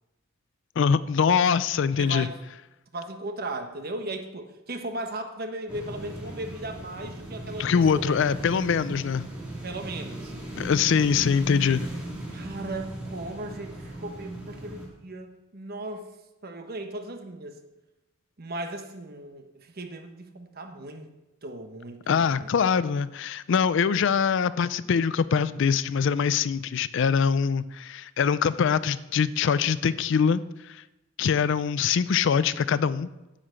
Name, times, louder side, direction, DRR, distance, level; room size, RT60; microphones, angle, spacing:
voice 1, 0.8-2.3 7.6-9.3 10.6-11.9 22.1-30.8 31.2-33.1, left 6 dB, 60° left, 17 dB, 0.4 m, -23 dB
voice 2, 2.0-2.3 2.9-8.2 9.6-10.3 12.3-16.0 16.4-17.6 18.4-21.1 21.4-22.5, right 2 dB, 50° right, 6 dB, 1.2 m, -37 dB
sound 1, 5.7-14.9, right 1 dB, 5° right, 2.3 m, -38 dB
10.0 x 5.7 x 7.9 m, 1.0 s
head